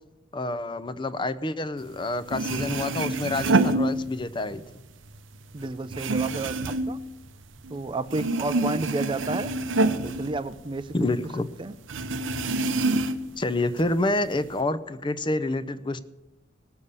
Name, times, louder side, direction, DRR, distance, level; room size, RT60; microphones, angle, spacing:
voice 1, 0.3-4.6 10.9-11.5 13.4-16.0, left 2 dB, 25° left, 12 dB, 0.6 m, -28 dB
sound 1, 2.0-2.1 2.3-4.5 4.8-7.8 8.1-11.1 11.3-11.4 11.9-13.4 13.8-14.5, right 2 dB, 85° right, 0.7 m, -27 dB
voice 2, 5.5-7.0 7.7-9.5 10.0-11.2 11.6-11.7, right 2 dB, 25° right, 13 dB, 0.4 m, -31 dB
18.5 x 7.1 x 6.7 m, 0.98 s
head